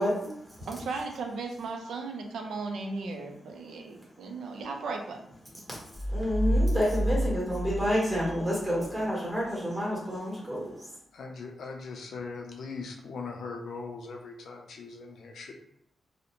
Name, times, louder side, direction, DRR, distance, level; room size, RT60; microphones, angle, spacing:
voice 1, 0.0-0.7 5.6-11.0, equal, 15° right, -5 dB, 1.2 m, -30 dB
voice 2, 0.7-5.3, right 3 dB, 85° right, 3 dB, 0.4 m, -36 dB
sound 1, 6.0-8.9, equal, 10° left, 0.3 m, -29 dB
voice 3, 11.1-15.5, left 4 dB, 80° left, 2 dB, 0.5 m, -40 dB
2.5 x 2.0 x 2.9 m, 0.71 s
cardioid pair, 95°, 0 cm